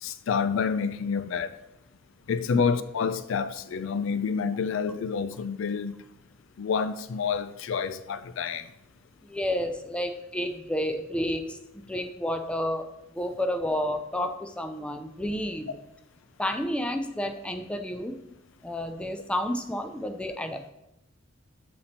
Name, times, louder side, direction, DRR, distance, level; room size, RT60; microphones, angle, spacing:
voice 1, 0.0-1.6 2.3-5.9 6.6-8.7, left 6 dB, 70° left, 0.4 m, -28 dB
voice 2, 9.2-12.9 13.1-15.7 16.4-18.2 18.6-20.6, left 1 dB, 5° left, 0.5 m, -30 dB
6.9 x 4.3 x 4.3 m
head